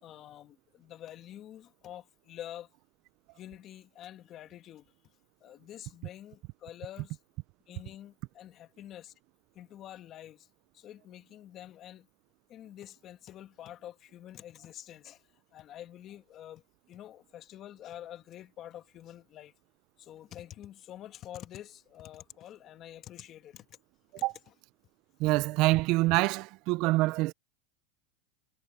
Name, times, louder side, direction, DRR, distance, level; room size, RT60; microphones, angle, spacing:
voice 1, 0.0-2.7 3.3-4.9 5.4-7.2 7.7-9.1 9.5-10.5 10.7-12.1 12.5-19.5 20.0-23.8 24.2-24.5, left 12 dB, 40° left, 1.9 m, -47 dB
voice 2, 25.2-27.3, right 20 dB, 55° right, 0.7 m, -25 dB
supercardioid pair, 120°, 0 cm